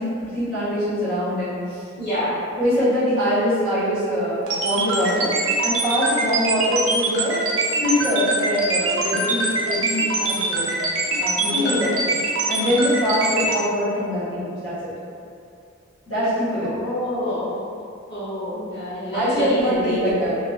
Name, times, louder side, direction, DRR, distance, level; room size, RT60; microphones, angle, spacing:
voice 1, 0.0-1.8 2.6-5.3 5.6-7.4 7.8-10.7 11.1-11.9 12.5-14.9 16.1-16.8 19.1-20.4, equal, 80° left, -14 dB, 1.3 m, -23 dB
voice 2, 2.0-2.4 11.5-11.9 16.6-17.6 18.1-20.0, left 1 dB, 50° left, -14 dB, 1.3 m, -27 dB
sound 1, 4.5-13.6, right 3 dB, 90° right, 0.5 m, -23 dB
3.0 x 2.2 x 2.3 m, 2.4 s
head